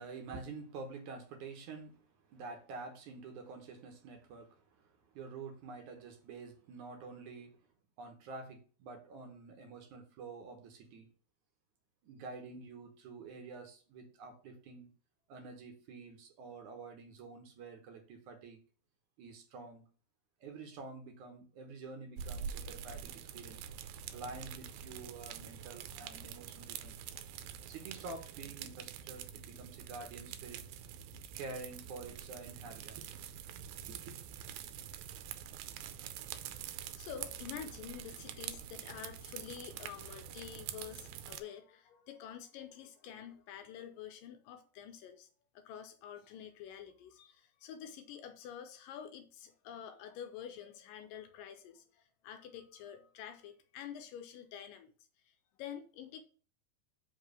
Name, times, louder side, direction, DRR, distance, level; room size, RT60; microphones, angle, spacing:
voice 1, 0.0-7.6 8.0-11.1 12.0-14.9 15.3-18.6 19.2-19.9 20.4-23.7 23.9-27.0 27.6-30.6 31.3-33.1 33.9-34.2, right 3 dB, 65° right, 2.2 m, -48 dB
sound 1, 22.2-41.4, right 9 dB, 80° right, 2.4 m, -46 dB
voice 2, 36.4-45.3 45.5-56.2, left 9 dB, 80° left, 2.2 m, -48 dB
5.5 x 4.7 x 6.3 m
omnidirectional pair, 4.2 m